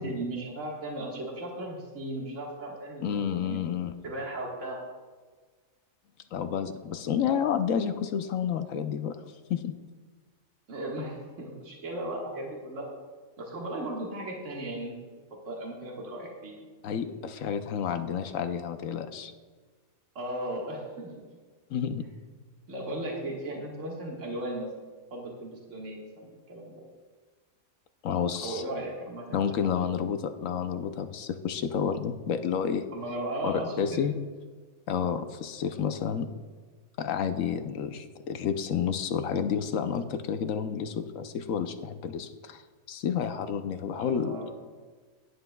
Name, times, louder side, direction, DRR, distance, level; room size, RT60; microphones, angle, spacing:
voice 1, 0.0-3.1 3.4-3.6 4.0-4.8 10.7-12.9 13.4-15.1 15.5-16.6 20.2-21.1 22.7-24.7 25.1-26.8 28.4-29.9 32.9-34.0 43.8-44.5, right 1 dB, 60° right, -2 dB, 1.9 m, -36 dB
voice 2, 3.0-3.9 6.3-9.2 9.5-9.7 16.8-19.3 21.7-22.1 28.0-28.6 29.3-32.8 33.4-34.1 34.9-36.3 37.0-42.6 42.9-44.5, left 7 dB, 70° left, 8 dB, 1.0 m, -30 dB
16.5 x 9.9 x 2.3 m, 1.4 s
omnidirectional pair, 1.5 m